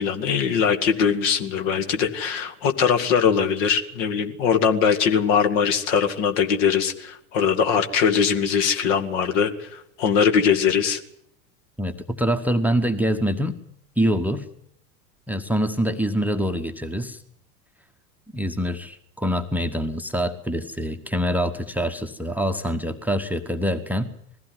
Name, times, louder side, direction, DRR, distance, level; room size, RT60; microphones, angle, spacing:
voice 1, 0.0-11.0, left 7 dB, 55° left, 8 dB, 2.2 m, -21 dB
voice 2, 11.8-13.6 14.0-14.5 15.3-17.2 18.3-24.1, equal, 5° right, 10 dB, 1.0 m, -25 dB
20.5 x 15.5 x 9.6 m, 0.73 s
figure-of-eight pair, 80°, 44 cm